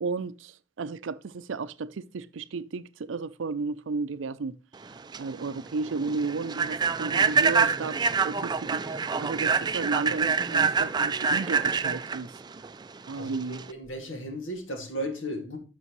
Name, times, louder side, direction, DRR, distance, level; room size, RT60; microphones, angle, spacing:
voice 1, 0.0-4.6 5.2-12.3 13.1-13.6, right 4 dB, 80° right, 0.5 m, -33 dB
Human voice / Train, 4.8-13.7, right 5 dB, 20° right, 0.4 m, -26 dB
voice 2, 13.2-15.6, equal, 85° left, 2.3 m, -35 dB
11.0 x 6.1 x 3.1 m
head